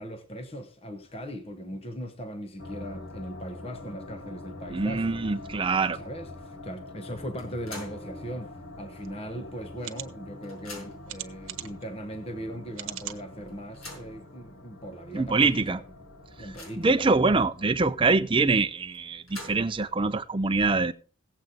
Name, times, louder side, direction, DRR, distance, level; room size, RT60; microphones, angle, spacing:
voice 1, 0.0-5.2 5.9-15.8 16.4-17.1, equal, 25° left, 0.9 m, -39 dB
sound 1, 2.6-17.7, left 2 dB, 60° left, 1.3 m, -45 dB
voice 2, 4.7-6.0 15.1-15.8 16.8-20.9, right 3 dB, 25° right, 0.5 m, -24 dB
sound 2, 7.4-8.1 8.5-8.6 9.7-9.8 10.1-11.2 11.9-12.0 12.4-12.5 13.5-14.2 14.9-15.0 15.4-15.5 16.0-17.0 18.9-19.9, left 2 dB, 90° left, 6.1 m, -45 dB
sound 3, 9.0-9.1 9.8-10.1 11.1-11.8 12.7-13.2 13.8-13.9 14.2-14.3, right 12 dB, 70° right, 1.0 m, -38 dB
16.5 x 8.1 x 3.9 m
head